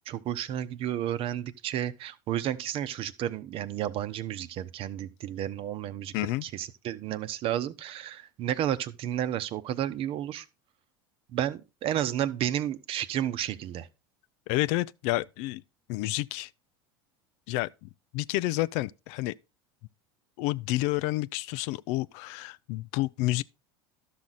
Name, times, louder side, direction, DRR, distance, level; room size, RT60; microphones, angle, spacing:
voice 1, 0.0-6.1 6.4-10.4 11.3-13.9, right 11 dB, 50° right, 0.9 m, -32 dB
voice 2, 6.1-6.4 14.5-15.6 15.9-16.5 17.5-19.3 20.4-23.4, left 18 dB, 65° left, 0.4 m, -30 dB
12.0 x 6.2 x 4.0 m
hypercardioid pair, 90°, 12 cm